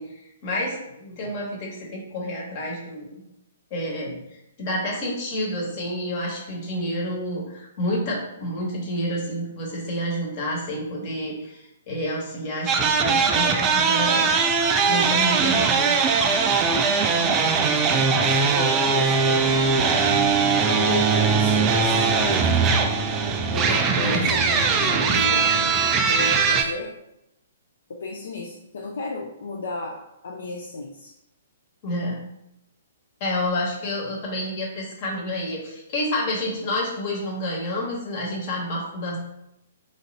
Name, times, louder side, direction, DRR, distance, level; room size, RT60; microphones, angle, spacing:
voice 1, 0.0-3.1 3.7-14.3 14.8-16.0 18.0-18.1 31.8-32.3 33.2-39.2, left 1 dB, 40° left, -2 dB, 1.2 m, -29 dB
sound 1, 12.7-26.6, right 5 dB, 25° right, 0.4 m, -20 dB
voice 2, 17.1-17.5 18.1-20.0 20.7-22.5 23.5-25.5 26.0-26.9 27.9-31.1, left 3 dB, 60° left, 0 dB, 0.4 m, -33 dB
sound 2, 19.4-25.7, equal, 90° right, 0.5 m, -35 dB
3.2 x 2.5 x 4.0 m, 0.84 s
figure-of-eight pair, 120°, 0 cm